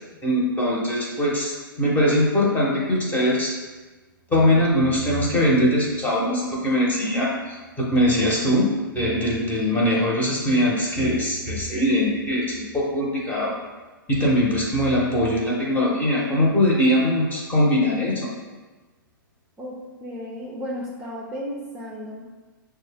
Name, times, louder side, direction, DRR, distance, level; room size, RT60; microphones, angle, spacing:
voice 1, 0.2-3.5 4.3-8.7 8.9-13.5 14.1-18.3, left 1 dB, 15° left, -4 dB, 1.1 m, -21 dB
voice 2, 20.0-22.2, equal, 10° right, -5 dB, 0.6 m, -33 dB
6.1 x 2.3 x 3.4 m, 1.3 s
hypercardioid pair, 120°, 12 cm